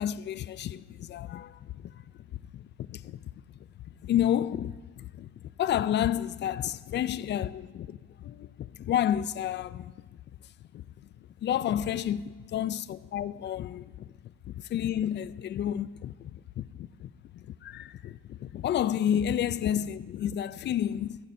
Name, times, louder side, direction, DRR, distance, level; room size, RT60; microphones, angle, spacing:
voice 1, 0.0-1.9 2.5-2.6 2.9-3.2 4.0-5.3 5.6-9.9 11.4-13.8 14.7-17.1 17.6-21.2, left 10 dB, 40° left, 0.4 m, -30 dB
16.5 x 14.5 x 2.7 m
supercardioid pair, 100°, 30 cm